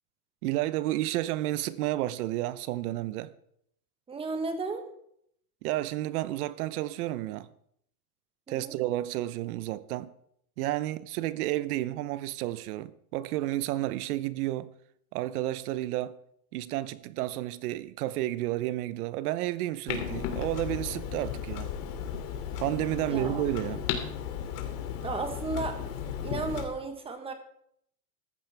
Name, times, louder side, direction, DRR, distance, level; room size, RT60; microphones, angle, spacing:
voice 1, 0.4-3.3 5.6-7.5 8.5-10.1 10.6-14.7 15.1-16.2 16.5-21.7 22.6-23.8, right 15 dB, 75° right, 0.8 m, -31 dB
voice 2, 4.1-4.8 8.5-8.7 23.0-23.4 25.0-25.8 26.2-27.3, right 3 dB, 10° right, 1.1 m, -34 dB
Clock, 19.9-26.6, left 8 dB, 85° left, 2.8 m, -35 dB
14.5 x 14.0 x 3.4 m
supercardioid pair, 165°, 46 cm